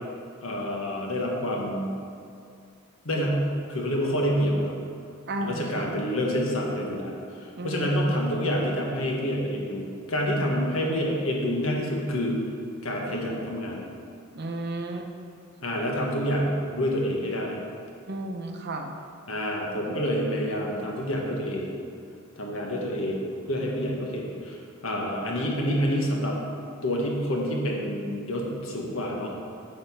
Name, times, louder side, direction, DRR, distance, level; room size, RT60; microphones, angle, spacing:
voice 1, 0.4-1.9 3.0-3.4 3.7-4.7 5.4-12.4 12.8-13.8 15.6-17.6 19.3-21.8 22.4-24.6 24.8-26.4 26.8-29.3, equal, 80° left, -1 dB, 1.4 m, -28 dB
voice 2, 5.3-5.9 7.6-8.3 14.3-15.1 18.1-18.9, right 1 dB, 55° right, 4 dB, 0.7 m, -33 dB
8.9 x 4.3 x 5.6 m, 2.4 s
head